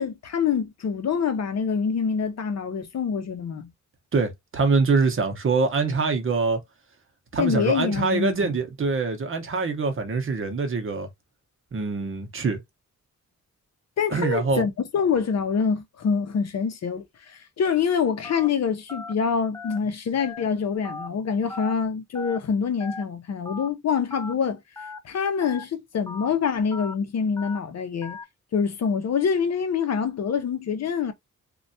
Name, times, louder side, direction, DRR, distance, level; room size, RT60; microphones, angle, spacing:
voice 1, 0.0-3.7 7.4-8.6 14.0-24.6 25.0-28.2 28.5-31.1, left 6 dB, 55° left, 0.6 m, -25 dB
voice 2, 4.1-6.6 7.3-11.1 11.7-12.6 14.1-14.6, right 4 dB, 45° right, 0.7 m, -24 dB
Telephone, 18.2-18.5 18.9-19.1 19.5-19.8 20.2-20.4 20.8-21.1 21.5-21.7 22.2-22.4 22.8-23.0 23.5-23.7 24.1-24.3 24.8-25.0 25.4-25.6 26.1-26.3 26.7-26.9 27.4-27.6 28.0-28.2, left 3 dB, 10° left, 0.3 m, -37 dB
3.2 x 2.2 x 2.6 m
wide cardioid pair, 150°, 31 cm